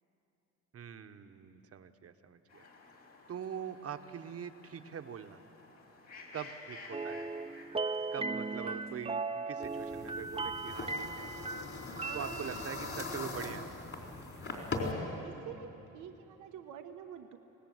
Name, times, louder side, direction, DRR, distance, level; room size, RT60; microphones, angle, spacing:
voice 1, 0.7-2.7 3.3-5.4 6.3-7.3 8.1-11.3 12.1-13.8, right 8 dB, 50° right, 9 dB, 1.1 m, -43 dB
sound 1, 2.5-9.1, left 3 dB, 60° left, 5.0 m, -54 dB
sound 2, 6.9-12.9, right 3 dB, 20° right, 0.7 m, -37 dB
sound 3, 9.6-14.9, left 3 dB, 45° left, 4.2 m, -41 dB
voice 2, 12.0-12.6 14.4-14.7 15.0-17.4, right 9 dB, 90° right, 5 dB, 1.0 m, -48 dB
25.5 x 18.5 x 7.9 m, 3.0 s
cardioid pair, 90°, 30 cm